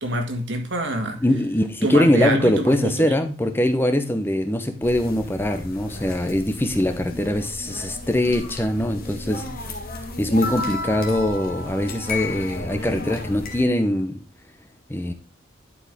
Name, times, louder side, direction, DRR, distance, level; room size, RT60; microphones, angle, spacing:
voice 1, 0.0-1.2 1.8-3.1, right 1 dB, 60° right, 5 dB, 1.7 m, -26 dB
voice 2, 1.2-9.5 10.2-14.2 14.9-15.1, left 1 dB, 10° left, 7 dB, 0.7 m, -22 dB
sound 1, 4.8-13.6, left 2 dB, 50° left, 1.8 m, -33 dB
11.5 x 4.9 x 3.5 m, 0.34 s
head